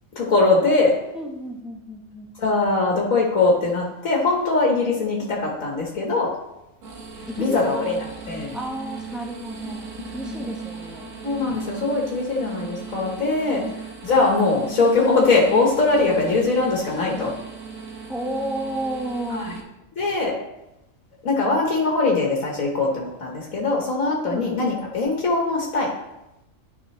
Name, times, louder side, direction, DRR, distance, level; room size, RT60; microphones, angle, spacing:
voice 1, 0.2-0.9 2.4-6.3 7.4-8.0 8.3-8.6 10.3-10.4 11.2-13.6 14.0-17.3 19.3-19.5 19.9-20.3 21.2-25.9, left 3 dB, 85° left, -3 dB, 1.8 m, -21 dB
voice 2, 1.1-2.3 7.3-7.9 8.5-9.9 10.1-11.1 13.4-13.7 18.1-19.4 24.1-24.5, right 1 dB, ahead, -1 dB, 1.2 m, -32 dB
sound 1, 6.8-19.6, right 5 dB, 75° right, 1.6 m, -37 dB
12.0 x 5.4 x 3.2 m, 0.92 s
omnidirectional pair, 1.4 m